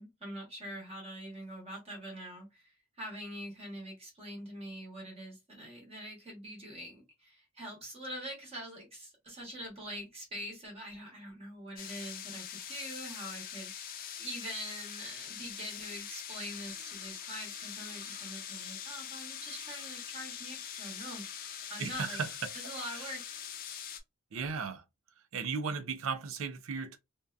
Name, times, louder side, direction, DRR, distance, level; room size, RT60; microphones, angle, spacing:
voice 1, 0.0-22.2 22.5-23.4, equal, 25° right, 1.0 m, -44 dB
sound 1, 11.8-24.0, left 9 dB, 40° left, 0.4 m, -43 dB
voice 2, 21.8-22.3 24.3-24.8 25.3-27.0, right 5 dB, 60° right, 0.4 m, -35 dB
2.6 x 2.2 x 2.4 m
head